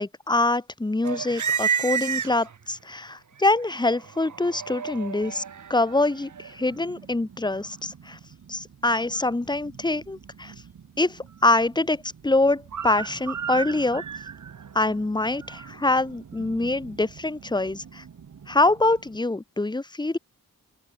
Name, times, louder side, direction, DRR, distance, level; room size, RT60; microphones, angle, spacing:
voice 1, 0.0-5.4 5.7-8.2 8.5-10.5 11.0-14.0 14.7-18.0 18.5-20.2, left 2 dB, 10° left, 0.7 m, -25 dB
sound 1, 1.0-2.8 3.3-19.2, right 7 dB, 60° right, 0.9 m, -35 dB
open air
wide cardioid pair, 105°, 35 cm